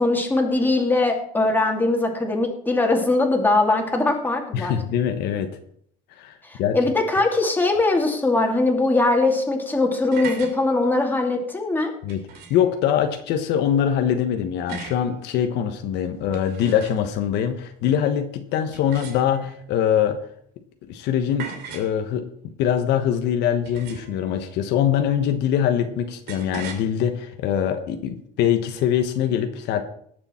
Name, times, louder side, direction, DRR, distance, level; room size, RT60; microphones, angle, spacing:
voice 1, 0.0-4.7 6.4-11.9, left 2 dB, 10° left, 1 dB, 2.4 m, -21 dB
voice 2, 4.5-5.5 6.1-6.8 12.0-12.2 12.5-20.2 20.9-22.3 22.6-29.8, left 9 dB, 70° left, 6 dB, 1.2 m, -23 dB
sound 1, 9.9-10.6 12.1-12.7 14.7-15.1 16.1-17.1 18.7-19.6 21.4-22.0 23.7-24.2 26.3-26.8, right 6 dB, 60° right, 2.7 m, -37 dB
18.5 x 6.9 x 4.4 m, 0.65 s
cardioid pair, 125°, 18 cm